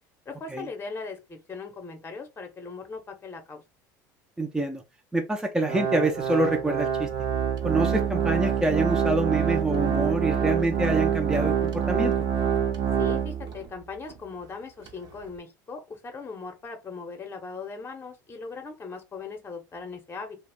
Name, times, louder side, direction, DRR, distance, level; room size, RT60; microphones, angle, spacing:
voice 1, 0.3-3.6 13.0-20.4, left 4 dB, 25° left, 0.8 m, -39 dB
voice 2, 4.4-4.8 5.1-7.1 7.6-12.1, right 2 dB, 5° right, 0.5 m, -26 dB
Organ, 5.7-13.7 14.1-14.2 14.9-15.0, right 8 dB, 50° right, 0.6 m, -26 dB
2.3 x 2.1 x 3.4 m
hypercardioid pair, 75°, 10 cm